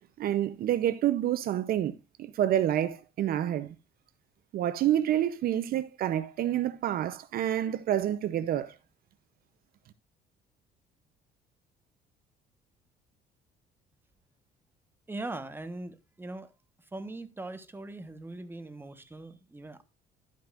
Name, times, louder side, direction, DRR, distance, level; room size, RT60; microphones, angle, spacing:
voice 1, 0.2-3.7 4.5-8.7, right 11 dB, 60° right, 0.7 m, -28 dB
voice 2, 15.1-16.5 16.8-19.8, right 2 dB, 10° right, 1.2 m, -41 dB
12.0 x 9.3 x 2.5 m
cardioid pair, 110°, 17 cm